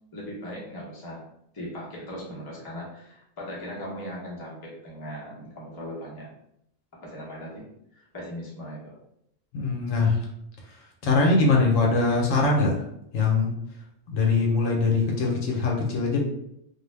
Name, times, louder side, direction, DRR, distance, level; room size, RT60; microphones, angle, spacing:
voice 1, 0.1-1.2 1.5-6.3 6.9-7.7 7.9-9.0, equal, 25° left, -5 dB, 0.5 m, -38 dB
voice 2, 9.5-10.2 11.0-12.8 13.1-13.5 14.1-16.2, left 3 dB, 70° left, -1 dB, 1.0 m, -22 dB
2.5 x 2.0 x 3.2 m, 0.78 s
omnidirectional pair, 1.4 m